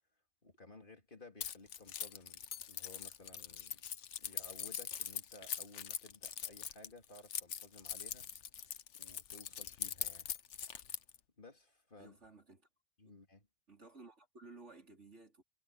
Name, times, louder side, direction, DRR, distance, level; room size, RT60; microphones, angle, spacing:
voice 1, 0.4-3.8 4.2-8.3 8.9-10.3 11.4-12.2 13.0-13.5, left 2 dB, 45° left, 3.1 m, -57 dB
Keys jangling, 1.4-11.2, left 9 dB, 85° left, 1.2 m, -42 dB
voice 2, 12.0-12.7 13.7-15.4, right 3 dB, 85° right, 4.8 m, -56 dB
omnidirectional pair, 1.2 m